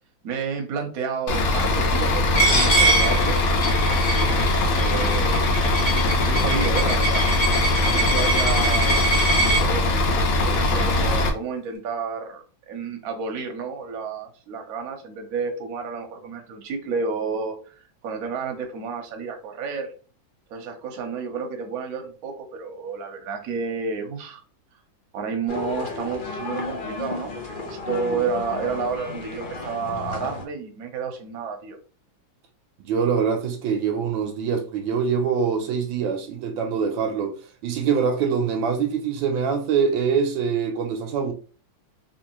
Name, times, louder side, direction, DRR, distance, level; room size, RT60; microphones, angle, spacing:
voice 1, 0.2-3.4 4.0-5.5 5.8-5.9 6.2-7.2 7.8-9.0 9.5-19.9 20.5-24.4 25.1-31.8, right 5 dB, 60° right, 1.1 m, -31 dB
Bus / Idling, 1.3-11.3, left 2 dB, 90° left, 1.6 m, -21 dB
Coin (dropping), 2.4-9.6, right 2 dB, 40° left, 0.7 m, -24 dB
sound 1, 25.5-30.4, left 3 dB, 75° left, 0.4 m, -33 dB
voice 2, 32.8-37.3 37.6-41.3, right 6 dB, 80° right, 1.3 m, -24 dB
3.6 x 2.9 x 2.9 m
omnidirectional pair, 2.2 m